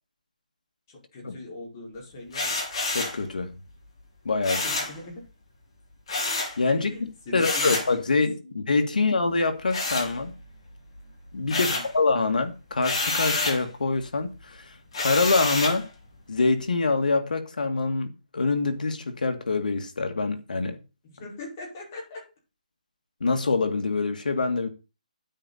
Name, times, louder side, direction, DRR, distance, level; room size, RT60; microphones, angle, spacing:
voice 1, 0.9-2.6 4.5-5.2 6.7-7.7 8.4-8.5 8.9-9.0 11.6-11.9 21.0-22.2, left 2 dB, 25° left, 5.2 m, -41 dB
sound 1, 2.3-3.2 4.4-5.0 6.1-6.6 7.4-7.9 9.7-10.6 10.9-11.9 12.8-13.6 14.9-15.8, left 3 dB, 45° left, 6.2 m, -28 dB
voice 2, 2.9-3.5 4.2-4.6 6.6-10.3 11.3-14.7 15.0-15.9 16.3-20.8 23.2-24.7, left 3 dB, 85° left, 2.2 m, -25 dB
9.7 x 9.0 x 4.2 m
hypercardioid pair, 175°, 4 cm